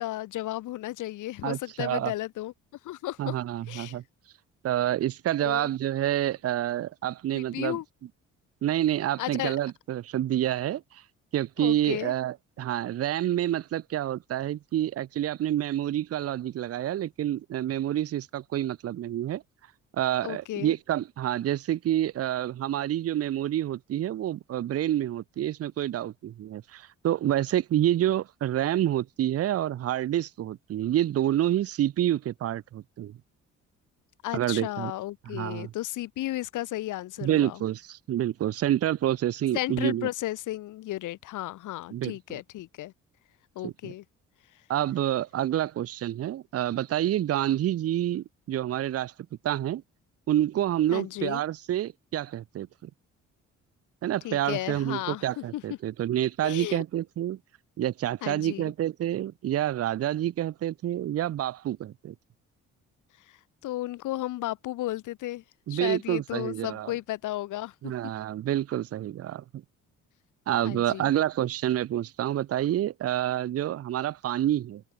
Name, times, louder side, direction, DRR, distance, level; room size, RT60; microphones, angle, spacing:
voice 1, 0.0-2.5 2.8-3.4 3.7-4.0 5.4-5.7 7.3-7.8 9.2-9.5 11.6-12.1 20.2-20.7 34.2-37.6 39.5-42.9 43.5-44.0 50.9-51.4 54.2-55.6 56.4-56.8 58.2-58.7 63.3-63.4 63.6-65.4 65.7-67.9 70.6-71.1, left 15 dB, 85° left, 1.6 m, -34 dB
voice 2, 1.4-2.1 3.2-4.0 4.6-7.8 8.6-11.0 11.3-19.4 20.0-33.2 34.3-34.9 35.3-35.7 37.2-40.1 41.9-42.1 43.6-43.9 44.7-49.1 49.4-49.8 50.3-52.9 54.0-57.4 57.8-62.1 65.7-66.9 67.8-69.6 70.5-74.8, right 12 dB, 55° right, 0.6 m, -28 dB
open air
cardioid pair, 90°, 30 cm